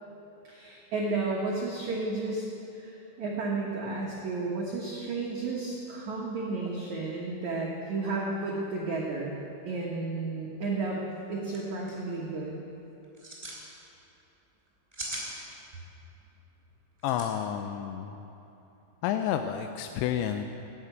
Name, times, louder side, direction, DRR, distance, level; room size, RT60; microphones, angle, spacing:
voice 1, 0.4-2.4 2.7-9.3 9.7-11.0 11.3-12.6, right 3 dB, 75° right, -3 dB, 1.7 m, -32 dB
sound 1, 11.1-11.2 11.4-11.6 11.9-12.2 13.0-13.6 14.7-15.3 17.0-17.3, right 1 dB, 5° right, 2.9 m, -38 dB
voice 2, 17.0-18.3 19.0-20.4, left 10 dB, 80° left, 6 dB, 2.7 m, -30 dB
16.0 x 10.5 x 8.1 m, 2.9 s
omnidirectional pair, 5.5 m